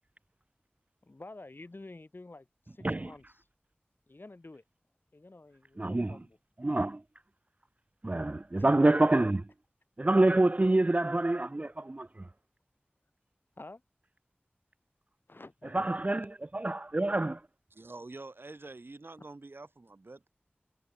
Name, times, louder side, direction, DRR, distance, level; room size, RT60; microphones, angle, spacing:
voice 1, 1.0-3.2 4.1-4.6 5.1-6.4 8.5-8.7 12.0-12.1 13.6-13.8 15.3-15.9, left 2 dB, 60° left, 5.6 m, -49 dB
voice 2, 5.8-6.2 6.6-7.0 8.0-9.5 10.0-12.3 15.7-16.3 16.5-17.4, right 2 dB, 35° right, 0.4 m, -26 dB
voice 3, 17.7-20.3, right 2 dB, 70° right, 1.8 m, -47 dB
wide cardioid pair, 50°, 4 cm